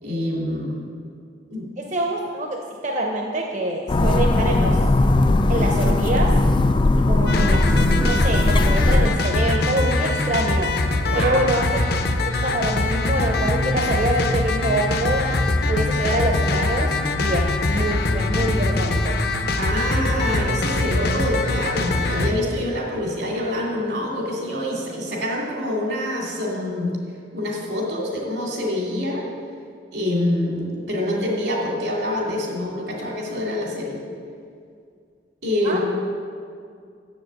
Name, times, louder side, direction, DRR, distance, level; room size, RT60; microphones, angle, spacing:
voice 1, 0.0-0.9 1.5-1.9 11.1-11.4 19.6-26.9 27.3-29.2 29.9-34.0 35.4-35.8, left 1 dB, 80° right, -2 dB, 2.4 m, -26 dB
voice 2, 1.8-4.9 5.5-6.4 7.0-7.7 8.0-10.8 11.1-15.3 15.7-19.2 35.6-35.8, right 1 dB, 40° right, 1 dB, 0.7 m, -25 dB
sound 1, 3.9-9.1, left 2 dB, 25° left, 0.3 m, -18 dB
sound 2, 7.3-22.3, left 2 dB, 60° left, 0.6 m, -22 dB
7.3 x 7.1 x 7.6 m, 2.3 s
head